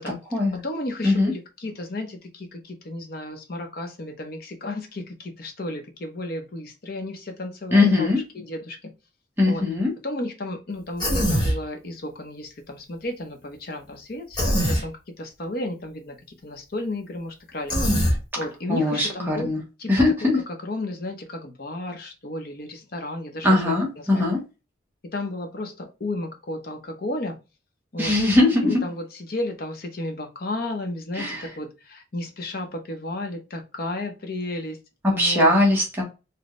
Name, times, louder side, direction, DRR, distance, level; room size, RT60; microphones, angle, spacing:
voice 1, 0.6-8.9 9.5-9.6 10.0-17.7 18.4-19.5 19.8-19.9 20.5-24.2 25.1-27.4 27.9-28.1 28.6-34.8 35.1-35.5, left 1 dB, 50° left, 4 dB, 0.7 m, -33 dB
voice 2, 7.7-8.2 9.4-9.9 18.7-19.6 19.9-20.4 23.4-24.4 28.0-28.8 31.2-31.4 35.0-36.0, left 2 dB, 10° right, -2 dB, 0.9 m, -20 dB
Human voice, 11.0-11.6 14.3-14.8 17.7-18.2, equal, 25° left, 1.1 m, -21 dB
4.1 x 2.2 x 3.0 m, 0.29 s
head